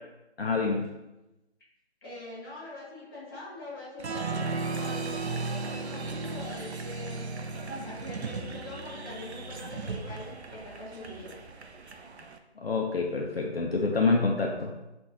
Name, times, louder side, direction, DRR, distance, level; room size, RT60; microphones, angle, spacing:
voice 1, 0.4-0.9 12.6-14.7, left 4 dB, 65° left, 0 dB, 0.5 m, -27 dB
voice 2, 2.0-5.2 5.8-7.3 7.6-11.3 11.8-11.9, left 2 dB, 20° left, -11 dB, 1.3 m, -43 dB
Applause, 4.0-12.4, right 3 dB, 80° right, 0.5 m, -36 dB
5.2 x 2.5 x 2.7 m, 0.98 s
figure-of-eight pair, 165°, 33 cm